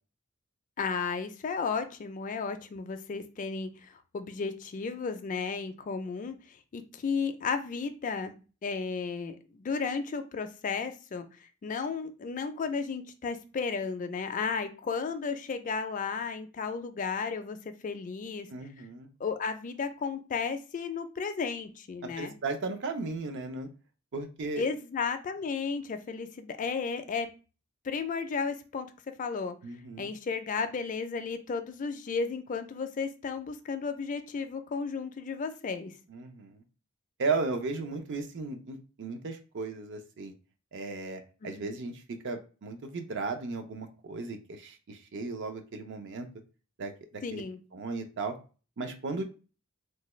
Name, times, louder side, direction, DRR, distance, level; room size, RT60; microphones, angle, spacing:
voice 1, 0.8-8.3 8.6-11.3 11.6-17.6 17.8-18.5 19.2-22.3 24.6-27.3 27.8-28.9 29.2-29.6 30.0-35.9 41.4-41.8 47.2-47.6, left 5 dB, 40° left, 8 dB, 0.4 m, -33 dB
voice 2, 18.5-19.1 22.0-23.7 24.1-24.7 29.6-30.1 36.1-36.6 37.2-40.3 40.7-46.3 46.8-47.4 47.7-48.4 48.8-49.2, right 3 dB, 60° right, 6 dB, 0.5 m, -35 dB
3.2 x 2.2 x 3.0 m, 0.34 s
head